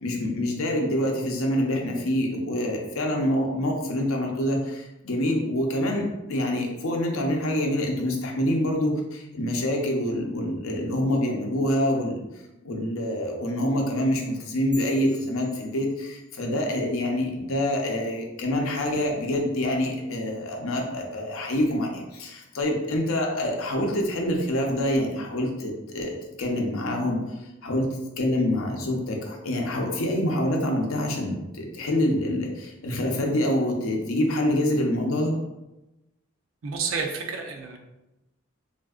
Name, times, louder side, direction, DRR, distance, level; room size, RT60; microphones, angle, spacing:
voice 1, 0.0-12.2 12.6-35.4, left 1 dB, 80° left, 1 dB, 0.6 m, -26 dB
sound 1, 14.7-16.5, left 2 dB, 5° right, 0.5 m, -46 dB
voice 2, 36.6-37.8, right 5 dB, 75° right, 3 dB, 0.5 m, -30 dB
3.4 x 2.5 x 2.3 m, 0.99 s
head